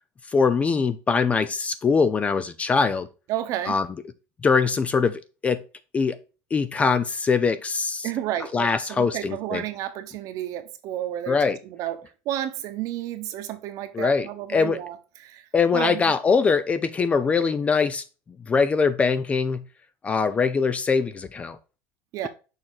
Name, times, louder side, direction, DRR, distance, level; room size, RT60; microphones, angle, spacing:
voice 1, 0.3-3.1 3.7-3.9 4.4-5.6 5.9-6.2 6.5-8.1 8.5-9.6 11.3-11.6 13.9-14.8 15.5-18.0 18.5-19.6 20.0-21.6, left 5 dB, 15° left, 0.4 m, -22 dB
voice 2, 3.3-3.8 8.0-16.0 22.1-22.3, right 12 dB, 50° right, 1.0 m, -32 dB
6.5 x 4.3 x 3.9 m
cardioid pair, 155°, 7 cm